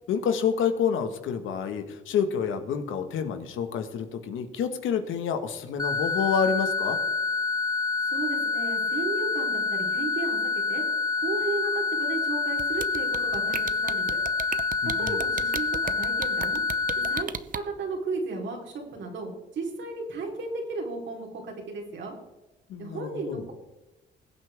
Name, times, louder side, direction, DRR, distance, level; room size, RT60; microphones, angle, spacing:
voice 1, 0.1-7.0 14.8-15.2 22.7-23.4, left 7 dB, 80° left, 8 dB, 1.6 m, -28 dB
sound 1, 5.8-17.2, left 4 dB, 20° left, 0.6 m, -27 dB
voice 2, 8.1-10.8 11.2-14.2 15.0-16.6 17.1-22.1 22.8-23.5, right 3 dB, 70° right, 1 dB, 3.7 m, -34 dB
sound 2, 12.6-17.6, right 7 dB, 45° right, 0.8 m, -34 dB
20.5 x 8.3 x 3.6 m, 1.0 s
cardioid pair, 90°, 20 cm